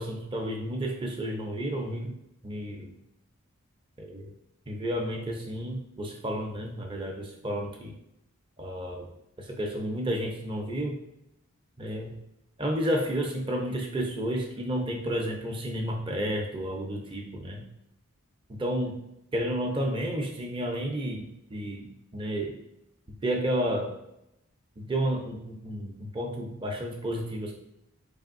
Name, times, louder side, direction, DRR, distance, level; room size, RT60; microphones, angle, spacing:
voice 1, 0.0-2.2 2.4-2.9 4.0-4.3 4.7-7.9 8.6-9.1 9.4-11.0 11.8-12.2 12.6-17.7 18.5-19.0 19.3-22.5 23.2-23.9 24.8-27.5, equal, 25° right, 1 dB, 0.6 m, -31 dB
4.5 x 3.4 x 2.5 m, 0.84 s
head